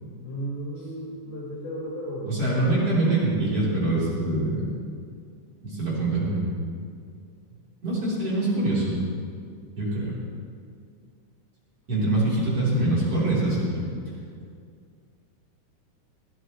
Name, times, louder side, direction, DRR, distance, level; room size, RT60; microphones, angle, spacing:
voice 1, 0.2-2.3, right 1 dB, 70° left, -7 dB, 6.2 m, -34 dB
voice 2, 2.2-4.7 5.6-6.4 7.8-8.9 9.8-10.1 11.9-13.9, right 2 dB, 40° right, -8 dB, 4.6 m, -24 dB
20.5 x 15.5 x 3.2 m, 2.2 s
omnidirectional pair, 4.5 m